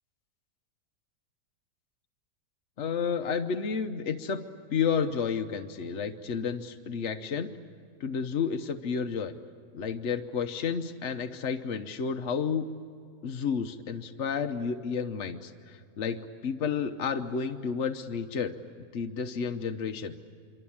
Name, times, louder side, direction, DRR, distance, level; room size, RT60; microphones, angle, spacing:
voice 1, 2.8-4.4 4.7-7.5 8.0-9.4 9.7-12.7 13.2-20.2, left 6 dB, 50° left, 5 dB, 1.1 m, -31 dB
26.0 x 24.5 x 8.7 m, 2.2 s
omnidirectional pair, 1.8 m